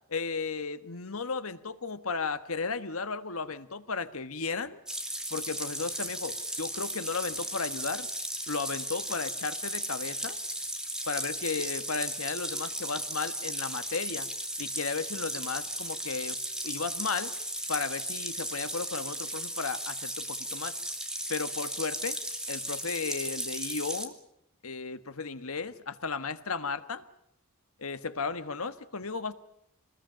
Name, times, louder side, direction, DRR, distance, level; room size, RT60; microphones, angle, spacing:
voice 1, 0.1-4.8 5.3-8.1 8.5-10.4 11.1-14.3 14.6-16.4 16.6-17.3 17.7-20.7 21.3-22.2 22.5-24.1 24.6-27.0 27.8-29.3, left 4 dB, 75° left, 11 dB, 1.5 m, -34 dB
sound 1, 4.9-24.1, right 1 dB, 5° right, 2.4 m, -36 dB
27.0 x 20.5 x 8.9 m, 0.77 s
head